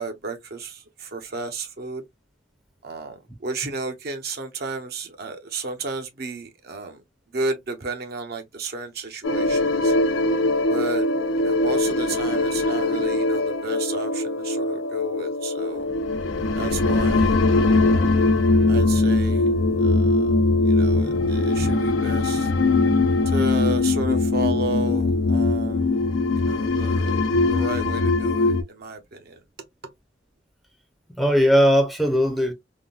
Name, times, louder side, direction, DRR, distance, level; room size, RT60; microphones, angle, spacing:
voice 1, 0.0-2.0 2.8-7.0 7.3-9.9 10.7-11.1 11.4-15.9 16.5-18.2 18.7-19.5 19.8-20.3 20.7-22.5 23.3-26.0 26.4-27.2 27.5-29.4, right 3 dB, 55° right, 0.7 m, -33 dB
sound 1, 9.2-28.6, left 2 dB, 85° left, 0.5 m, -21 dB
voice 2, 20.9-21.2 21.6-21.7 31.2-32.5, equal, ahead, 0.6 m, -20 dB
3.5 x 2.2 x 2.3 m
head